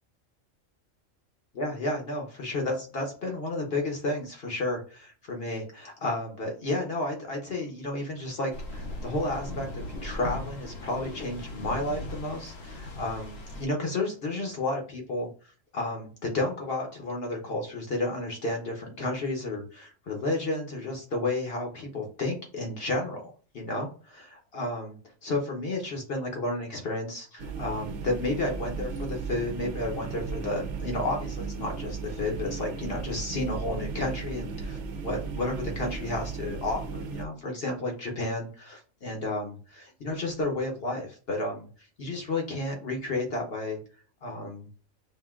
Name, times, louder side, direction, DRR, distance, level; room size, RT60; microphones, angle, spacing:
voice 1, 1.5-15.3 15.7-23.2 23.5-41.7 42.0-43.8 44.2-44.7, left 2 dB, 55° left, 1 dB, 0.9 m, -32 dB
sound 1, 8.5-13.7, left 1 dB, 80° left, 1.3 m, -38 dB
sound 2, 27.4-37.3, right 5 dB, 70° right, 0.9 m, -36 dB
5.5 x 2.6 x 2.3 m, 0.41 s
omnidirectional pair, 1.4 m